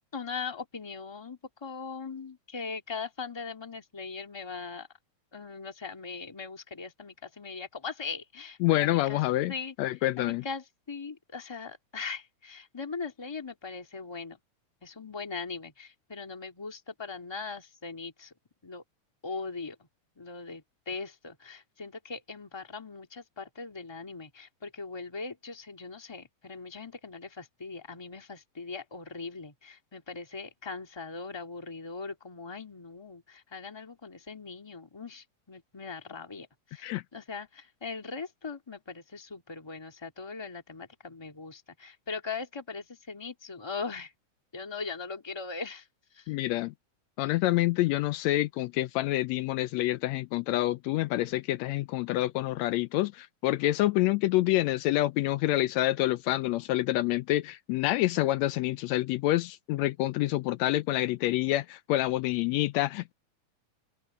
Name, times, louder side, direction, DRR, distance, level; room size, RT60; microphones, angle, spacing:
voice 1, 0.1-4.9 5.3-9.2 9.5-9.7 10.2-14.4 14.8-18.3 18.6-18.8 19.2-19.7 20.2-44.1 44.5-45.9 46.1-46.3, left 4 dB, 10° left, 1.5 m, -40 dB
voice 2, 8.6-9.5 9.8-10.5 36.8-37.0 46.3-46.7 47.2-63.1, left 16 dB, 80° left, 1.6 m, -27 dB
omnidirectional pair, 3.6 m